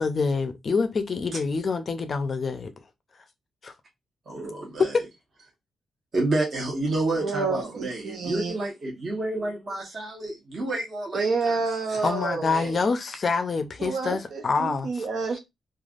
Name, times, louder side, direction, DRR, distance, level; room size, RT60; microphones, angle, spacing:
voice 1, 0.0-2.7 3.6-3.7 4.9-5.0 12.0-15.1, left 4 dB, 40° left, 0.4 m, -26 dB
voice 2, 4.3-5.0 6.1-11.6 12.5-12.7, right 2 dB, 40° right, 1.0 m, -29 dB
voice 3, 7.2-8.5 11.1-12.8 13.8-15.4, right 4 dB, 60° right, 0.5 m, -29 dB
3.2 x 2.3 x 2.4 m
wide cardioid pair, 140°, 0 cm